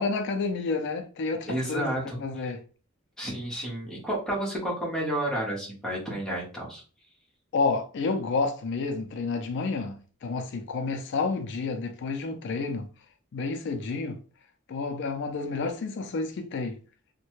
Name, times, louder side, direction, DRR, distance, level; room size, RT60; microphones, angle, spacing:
voice 1, 0.0-2.6 7.5-12.9 13.3-14.2 14.7-16.8, left 4 dB, 60° left, 0.4 m, -30 dB
voice 2, 1.5-2.2 3.2-6.8, right 1 dB, 5° left, 1.1 m, -31 dB
3.1 x 2.1 x 3.0 m
head